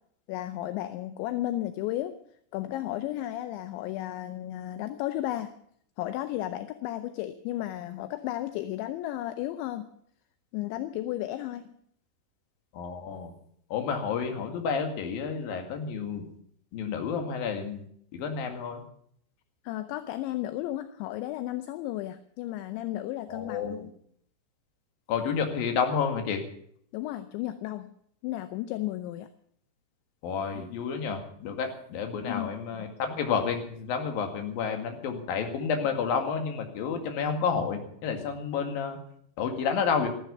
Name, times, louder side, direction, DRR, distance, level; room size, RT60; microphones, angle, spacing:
voice 1, 0.3-2.2 2.5-5.5 6.0-9.9 10.5-11.6 19.6-23.9 26.9-27.9 28.2-29.3 30.5-30.7 32.3-32.5 32.8-32.9, left 14 dB, 80° left, 11 dB, 2.8 m, -33 dB
voice 2, 12.7-13.3 13.7-16.3 16.7-17.8 18.1-18.8 23.3-23.9 25.1-26.4 30.2-39.0 39.4-40.1, left 6 dB, 55° left, 5 dB, 3.3 m, -30 dB
15.0 x 12.5 x 7.0 m, 0.65 s
omnidirectional pair, 5.9 m